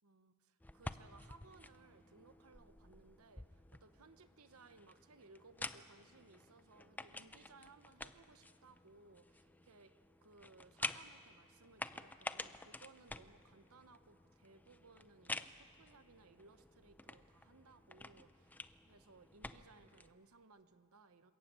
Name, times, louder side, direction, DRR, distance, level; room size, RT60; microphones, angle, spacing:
voice 1, 0.0-9.9 10.2-21.3, right 3 dB, 70° right, 10 dB, 1.0 m, -63 dB
sound 1, 0.6-20.1, left 2 dB, 10° left, 0.5 m, -50 dB
27.5 x 15.0 x 9.0 m, 2.3 s
head